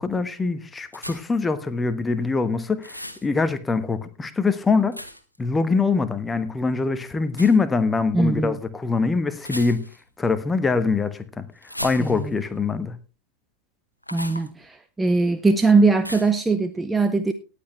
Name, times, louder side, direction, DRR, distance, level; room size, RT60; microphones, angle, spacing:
voice 1, 0.0-5.0 5.4-9.9 10.2-11.4 11.8-13.0, left 4 dB, 10° left, 12 dB, 1.2 m, -23 dB
sound 1, 0.9-1.4 2.8-3.3 4.9-5.4 7.3-7.6 9.4-10.1 11.6-12.5 14.0-14.5 16.0-16.4, equal, 85° left, 1.1 m, -36 dB
voice 2, 8.1-8.6 12.0-12.3 14.1-17.3, right 3 dB, 10° right, 9 dB, 0.8 m, -21 dB
18.5 x 8.2 x 3.2 m, 0.33 s
figure-of-eight pair, 90°, 0 cm